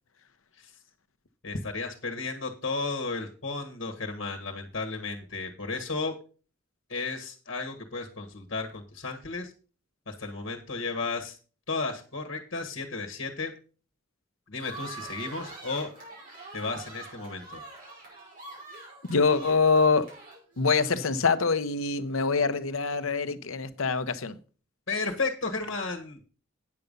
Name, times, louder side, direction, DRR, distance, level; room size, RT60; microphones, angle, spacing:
voice 1, 1.4-6.1 6.9-9.5 10.1-11.4 11.7-13.5 14.5-15.9 16.5-17.6 24.9-26.2, left 3 dB, 60° left, 1.5 m, -33 dB
sound 1, 14.6-21.5, right 3 dB, 40° right, 5.5 m, -45 dB
voice 2, 19.1-20.1 20.6-24.4, left 4 dB, 85° left, 0.9 m, -24 dB
9.5 x 6.9 x 5.3 m
head